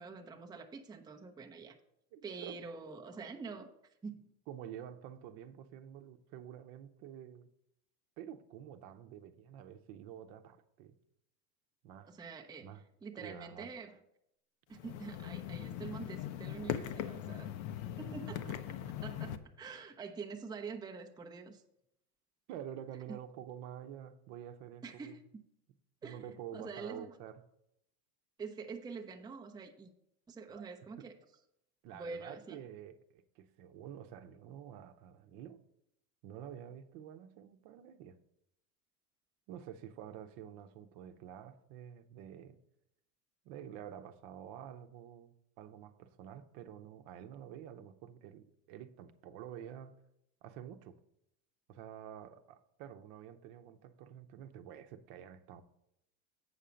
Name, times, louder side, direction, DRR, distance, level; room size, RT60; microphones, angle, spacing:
voice 1, 0.0-1.8 2.2-3.7 4.0-4.2 12.1-12.7 13.0-14.0 14.7-17.5 18.0-18.6 19.0-21.6 23.1-23.2 24.8-25.2 26.0-26.2 26.5-27.2 28.4-29.9 30.3-31.2 31.9-32.6, right 4 dB, 10° right, 3 dB, 0.6 m, -46 dB
voice 2, 2.1-2.6 4.5-7.5 8.2-11.0 11.8-12.1 12.6-12.8 13.1-13.7 18.5-18.6 22.5-25.1 26.0-27.4 30.5-30.7 31.8-35.6 36.2-38.2 39.5-42.6 43.4-49.9 50.4-51.0 51.7-55.6, right 10 dB, 55° right, 9 dB, 0.8 m, -49 dB
sound 1, 14.7-19.4, left 10 dB, 60° left, 0.7 m, -40 dB
8.3 x 5.6 x 5.1 m, 0.79 s
supercardioid pair, 105°, 47 cm